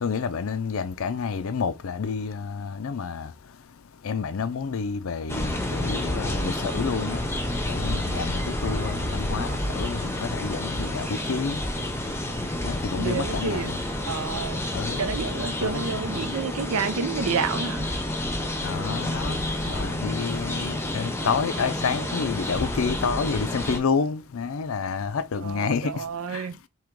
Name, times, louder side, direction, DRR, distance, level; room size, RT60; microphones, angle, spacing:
voice 1, 0.0-3.3 4.0-7.2 7.7-11.6 12.6-13.8 14.7-15.0 15.4-15.9 18.6-26.0 26.3-26.4, left 5 dB, 70° left, 0.5 m, -29 dB
sound 1, 5.3-23.8, left 1 dB, 10° left, 0.7 m, -29 dB
voice 2, 13.0-13.7 14.0-14.7 15.0-17.9 25.4-26.6, right 5 dB, 80° right, 0.5 m, -29 dB
3.6 x 2.9 x 4.6 m
head